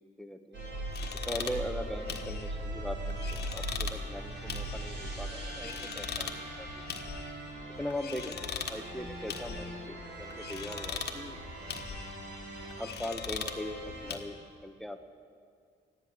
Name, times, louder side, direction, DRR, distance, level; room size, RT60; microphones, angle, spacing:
voice 1, 0.2-0.6 1.2-6.7 7.8-11.4 11.8-11.9 12.8-14.4 14.6-15.0, left 1 dB, ahead, 6 dB, 1.1 m, -40 dB
sound 1, 0.5-14.1, right 1 dB, 60° right, 4.3 m, -40 dB
sound 2, 0.9-14.2, left 6 dB, 55° left, 1.6 m, -41 dB
14.0 x 10.5 x 9.8 m, 2.2 s
cardioid pair, 90°, 20 cm